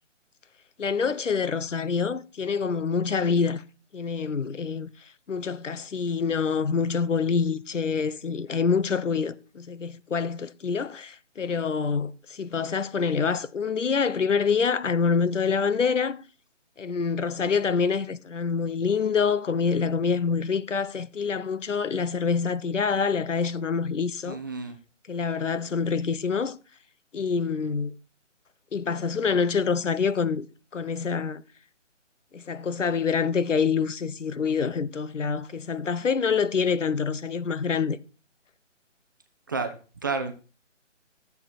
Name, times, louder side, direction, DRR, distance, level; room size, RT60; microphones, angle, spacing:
voice 1, 0.8-3.6 3.9-4.9 5.3-16.2 16.8-24.4 25.1-26.6 27.1-27.9 28.7-30.5 30.7-31.4 32.3-38.0, left 5 dB, 75° left, 1.1 m, -26 dB
voice 2, 24.3-24.8 39.5-39.8 40.0-40.3, right 4 dB, 15° right, 0.7 m, -30 dB
14.5 x 8.1 x 4.3 m
hypercardioid pair, 165°, 37 cm